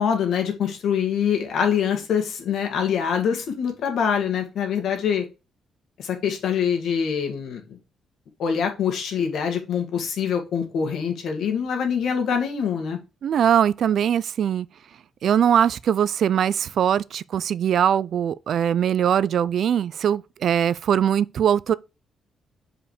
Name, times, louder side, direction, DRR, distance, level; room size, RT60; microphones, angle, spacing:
voice 1, 0.0-5.2 6.0-7.6 8.4-13.0, left 7 dB, 70° left, 1.9 m, -24 dB
voice 2, 13.2-14.7 15.2-21.7, right 9 dB, 55° right, 0.3 m, -21 dB
5.4 x 4.9 x 4.9 m
cardioid pair, 155°, 0 cm